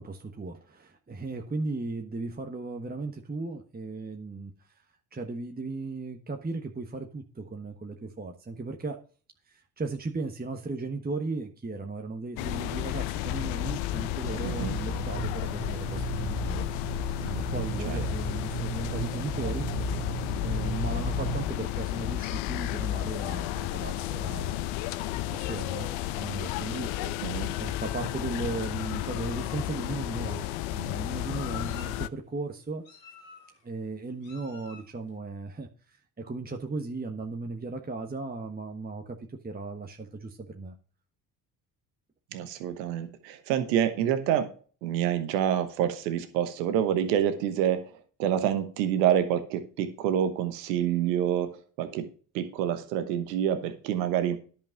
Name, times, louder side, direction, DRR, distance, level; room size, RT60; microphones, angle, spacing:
voice 1, 0.0-4.7 5.1-9.0 9.5-16.6 17.2-19.7 20.4-24.6 25.3-26.9 27.6-30.5 30.7-32.8 33.6-40.7, right 3 dB, 20° right, 4 dB, 1.3 m, -36 dB
sound 1, 12.4-32.1, left 14 dB, 70° left, 0.7 m, -32 dB
sound 2, 14.2-21.5, right 8 dB, 60° right, 1.9 m, -36 dB
voice 2, 14.4-14.7 17.8-18.0 27.2-27.5 42.3-44.5 44.8-47.9 48.2-52.1 52.3-54.4, right 10 dB, 85° right, 9 dB, 1.2 m, -27 dB
Meow, 25.1-26.3 26.9-27.1 28.0-28.1 28.5-28.7 29.7-29.8 30.2-30.7 31.3-32.0 32.8-33.6 34.2-34.9, left 6 dB, 90° left, 2.7 m, -46 dB
10.5 x 5.5 x 5.9 m, 0.40 s
hypercardioid pair, 55°, 49 cm